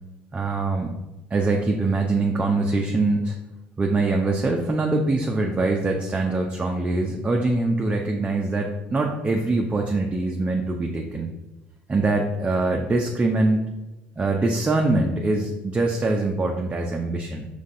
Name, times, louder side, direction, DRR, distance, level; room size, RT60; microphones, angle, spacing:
voice 1, 0.3-0.9 1.3-3.4 3.8-11.3 11.9-13.7 14.2-17.5, right 2 dB, 25° right, 1 dB, 0.5 m, -23 dB
5.1 x 3.2 x 2.6 m, 1.0 s
hypercardioid pair, 70°, 5 cm